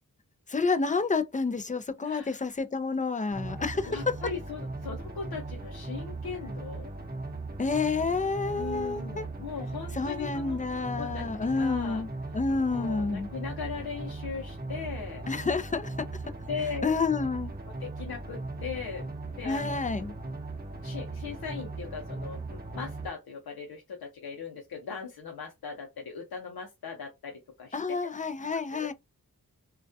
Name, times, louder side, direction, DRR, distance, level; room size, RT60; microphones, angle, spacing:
voice 1, 0.5-4.1 7.6-9.3 9.9-13.3 15.3-16.1 16.8-17.5 19.4-20.1 27.7-28.9, left 4 dB, 20° left, 0.4 m, -29 dB
voice 2, 2.0-2.4 3.9-6.9 8.5-10.6 11.0-12.0 12.7-15.3 16.5-16.9 17.6-19.8 20.8-27.8 28.0-28.1 28.7-28.9, left 5 dB, 90° left, 0.6 m, -39 dB
sound 1, 3.3-23.1, right 2 dB, 25° right, 0.8 m, -38 dB
2.3 x 2.1 x 2.6 m
cardioid pair, 45°, 36 cm